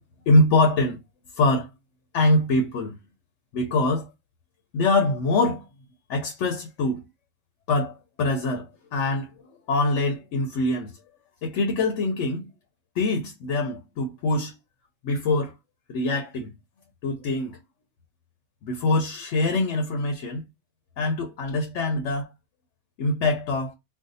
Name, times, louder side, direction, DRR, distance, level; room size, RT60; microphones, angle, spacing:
voice 1, 0.3-1.0 1.3-1.7 2.1-3.0 3.5-4.1 4.7-5.7 6.1-7.0 7.7-9.3 9.7-10.9 11.4-12.5 13.0-14.6 15.0-15.5 15.9-16.5 17.0-17.6 18.6-20.4 21.0-22.3 23.0-23.7, left 2 dB, 90° left, 1.0 m, -24 dB
2.6 x 2.1 x 3.9 m
omnidirectional pair, 1.2 m